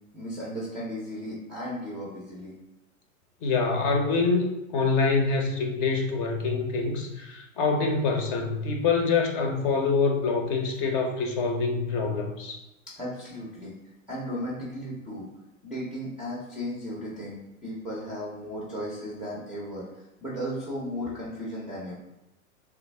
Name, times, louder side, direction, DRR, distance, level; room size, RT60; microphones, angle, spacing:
voice 1, 0.1-2.5 13.0-13.7 14.1-15.3 15.6-21.9, equal, ahead, -7 dB, 0.5 m, -35 dB
voice 2, 3.4-12.6, left 4 dB, 40° left, 2 dB, 0.7 m, -25 dB
3.3 x 2.2 x 3.2 m, 0.93 s
hypercardioid pair, 125°, 41 cm